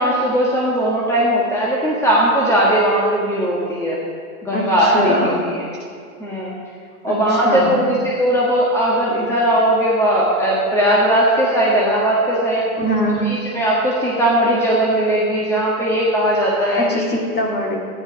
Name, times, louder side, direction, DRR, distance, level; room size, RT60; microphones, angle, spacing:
voice 1, 0.0-4.0 4.4-5.6 6.2-6.5 7.0-12.6 13.2-17.0, right 1 dB, 5° left, -5 dB, 1.6 m, -18 dB
voice 2, 4.5-5.4 7.1-7.9 12.8-13.3 16.8-17.8, equal, 25° left, -1 dB, 2.2 m, -22 dB
13.5 x 10.0 x 5.1 m, 2.3 s
hypercardioid pair, 135°, 43 cm